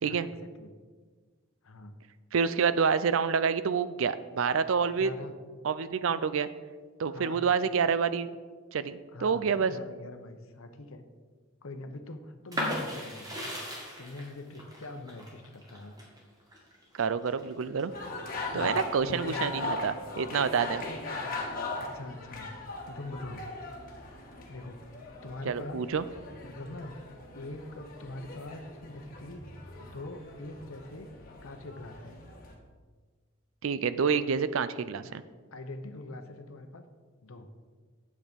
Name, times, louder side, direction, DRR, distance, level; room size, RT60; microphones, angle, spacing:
voice 1, 0.0-0.7 1.6-2.0 5.0-5.3 7.1-7.4 9.1-11.0 11.6-13.6 14.0-15.9 18.5-19.4 20.9-21.4 21.7-22.5 22.9-23.5 24.5-24.8 25.2-25.8 26.4-27.0 27.3-29.4 29.8-31.1 31.4-32.1 35.0-35.2 35.5-36.8 37.2-37.5, left 2 dB, 70° left, 7 dB, 0.8 m, -43 dB
voice 2, 2.3-5.1 5.6-6.5 7.0-8.3 8.7-9.7 17.0-17.9 18.5-20.9 25.5-26.0 33.6-35.2, right 6 dB, 65° right, 14 dB, 0.4 m, -28 dB
sound 1, 12.5-18.1 18.6-19.4, equal, 15° right, 1.7 m, -37 dB
sound 2, 17.9-32.5, left 3 dB, 40° left, 1.5 m, -40 dB
8.6 x 7.3 x 5.2 m, 1.5 s
head